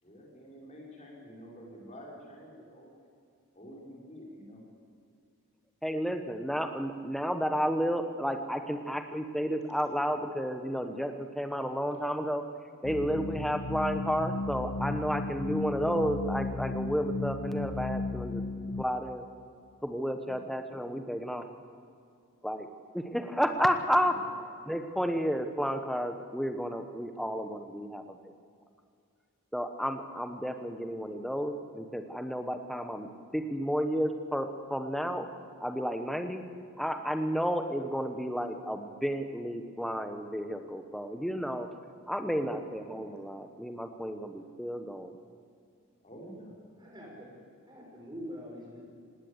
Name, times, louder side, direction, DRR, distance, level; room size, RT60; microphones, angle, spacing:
voice 1, 0.0-3.1 3.5-4.6 20.2-20.5 24.1-24.3 42.2-42.6 46.0-46.5, equal, 30° left, -2 dB, 5.1 m, -49 dB
voice 2, 5.8-12.4 12.8-18.4 18.8-19.2 19.8-21.5 22.4-22.7 22.9-24.2 24.7-28.2 29.5-35.3 35.6-36.4 36.8-41.7 42.1-45.1, equal, ahead, 7 dB, 1.1 m, -32 dB
sound 1, 12.8-18.8, left 3 dB, 50° left, 0.7 m, -34 dB
voice 3, 46.8-47.3 47.7-48.9, equal, 20° right, -2 dB, 5.5 m, -44 dB
18.5 x 18.0 x 8.2 m, 2.4 s
head